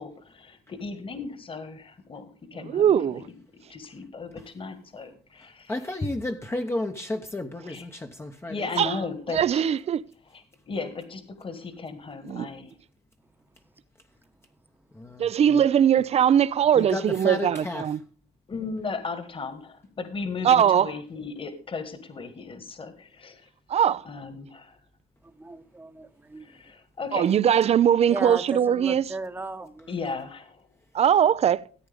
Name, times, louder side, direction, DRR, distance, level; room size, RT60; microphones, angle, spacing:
voice 1, 0.0-3.2 3.7-6.0 7.7-7.9 8.5-9.7 10.3-12.8 18.5-23.5 24.0-24.8 26.4-27.3 29.9-30.7, left 4 dB, 30° left, 1.7 m, -36 dB
voice 2, 2.7-3.2 8.8-8.9 9.3-10.0 12.3-12.5 15.2-18.0 20.4-20.9 23.7-24.0 27.1-29.1 30.9-31.6, right 9 dB, 40° right, 0.5 m, -21 dB
voice 3, 5.7-8.6 8.8-8.9 14.9-15.6 16.8-17.9, left 2 dB, 15° left, 0.9 m, -32 dB
voice 4, 25.4-26.5 28.1-29.9, right 2 dB, 10° right, 1.0 m, -35 dB
14.0 x 8.8 x 3.5 m
cardioid pair, 110°, 17 cm